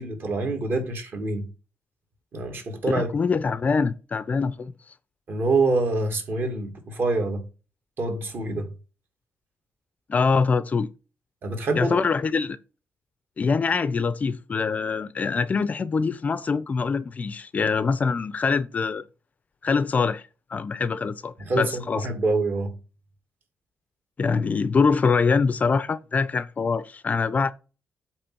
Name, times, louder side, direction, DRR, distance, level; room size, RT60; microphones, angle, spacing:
voice 1, 0.0-1.5 2.3-3.1 5.3-7.4 8.0-8.7 11.4-12.0 21.5-22.7, right 3 dB, 50° right, 2.2 m, -26 dB
voice 2, 2.9-4.7 10.1-10.9 11.8-12.6 13.4-19.0 19.6-20.2 20.5-22.1 24.2-27.5, left 5 dB, 35° left, 0.5 m, -24 dB
8.4 x 3.2 x 6.1 m
cardioid pair, 145°, 5 cm